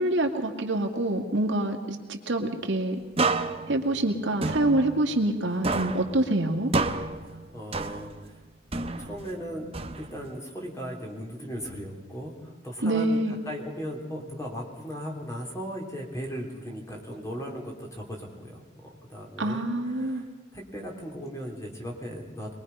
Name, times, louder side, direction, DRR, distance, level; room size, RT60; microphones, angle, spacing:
voice 1, 0.0-3.0 3.7-6.7 12.8-13.4 19.4-20.2, right 1 dB, 75° right, 3 dB, 2.2 m, -26 dB
sound 1, 3.2-5.4 5.6-8.3 8.7-10.4, right 3 dB, 30° right, 0.9 m, -30 dB
voice 2, 7.3-8.4 9.0-20.3 20.5-22.5, equal, 15° left, 0 dB, 3.6 m, -37 dB
23.5 x 21.0 x 5.6 m, 1.2 s
head